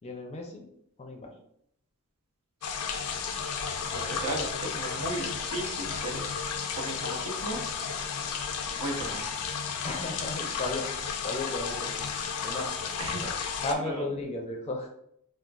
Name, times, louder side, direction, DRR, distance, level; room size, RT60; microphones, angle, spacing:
voice 1, 0.0-0.7 1.0-1.3 9.8-10.9 11.2-12.1 12.4-12.7 13.2-13.3 13.6-14.9, left 2 dB, 30° left, 2 dB, 0.4 m, -34 dB
sound 1, 2.6-13.7, left 6 dB, 85° left, 0.4 m, -33 dB
voice 2, 3.9-6.2 6.8-7.6 8.6-9.3 13.0-13.2 13.7-14.0, right 2 dB, 75° right, 2 dB, 0.7 m, -35 dB
3.7 x 2.3 x 2.3 m, 0.72 s
head